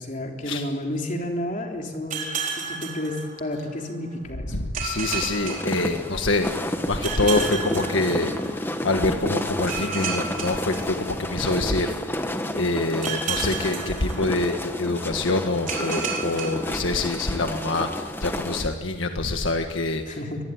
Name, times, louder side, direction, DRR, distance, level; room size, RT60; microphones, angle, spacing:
voice 1, 0.0-2.2 2.6-4.7 20.1-20.4, left 1 dB, 40° left, 1 dB, 3.7 m, -31 dB
sound 1, 2.1-3.9 4.7-6.5 7.0-8.8 9.7-11.7 13.0-14.8 15.7-17.5, right 5 dB, 40° right, 4.6 m, -33 dB
voice 2, 4.5-20.2, left 2 dB, 80° left, 5 dB, 1.6 m, -26 dB
sound 2, 5.1-18.6, left 1 dB, 10° left, 1.3 m, -31 dB
24.5 x 19.5 x 9.6 m, 1.4 s
head